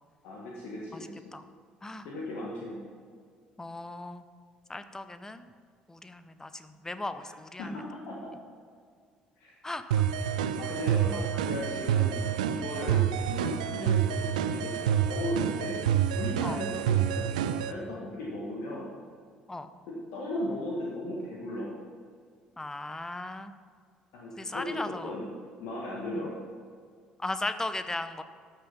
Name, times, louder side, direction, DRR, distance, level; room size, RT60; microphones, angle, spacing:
voice 1, 0.2-1.3 2.0-2.8 7.2-7.3 7.6-8.3 9.4-9.5 10.6-18.9 19.9-21.7 24.1-25.3 25.6-26.4, left 1 dB, 60° left, -4 dB, 1.7 m, -37 dB
voice 2, 0.9-1.5 1.8-2.1 3.6-4.2 4.7-5.5 5.9-7.7 9.6-10.1 11.1-11.2 12.9-13.0 16.4-16.6 19.5-19.7 22.6-23.5 24.4-25.2 27.2-28.2, left 2 dB, 15° left, 11 dB, 0.7 m, -37 dB
sound 1, 9.9-17.7, right 9 dB, 75° right, 0.4 m, -28 dB
13.0 x 6.9 x 5.4 m, 2.1 s
figure-of-eight pair, 55°, 4 cm